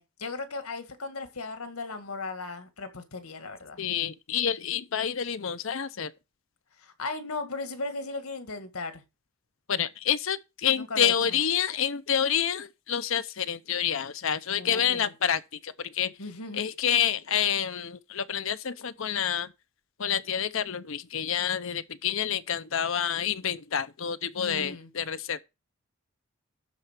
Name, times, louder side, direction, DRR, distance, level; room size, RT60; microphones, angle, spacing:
voice 1, 0.0-3.8 6.8-9.0 10.8-11.4 14.5-15.1 16.2-16.6 24.4-24.9, left 3 dB, 90° left, 2.1 m, -37 dB
voice 2, 3.8-6.1 9.7-16.1 16.5-19.5 20.0-25.4, left 8 dB, 70° left, 0.7 m, -28 dB
12.5 x 4.5 x 7.4 m
head